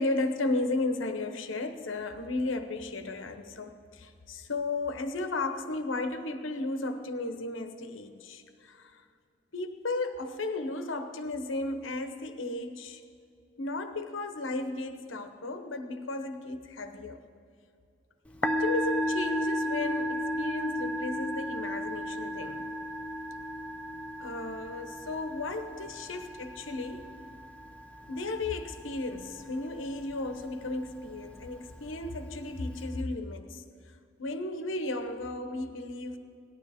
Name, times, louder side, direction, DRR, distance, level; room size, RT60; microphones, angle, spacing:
voice 1, 0.0-9.0 9.5-13.0 13.6-17.2 18.4-22.7 24.2-27.1 28.1-33.6 34.2-36.2, left 2 dB, 90° left, 0.9 m, -34 dB
Musical instrument, 18.3-33.0, equal, 5° left, 0.5 m, -35 dB
18.0 x 12.0 x 3.6 m
head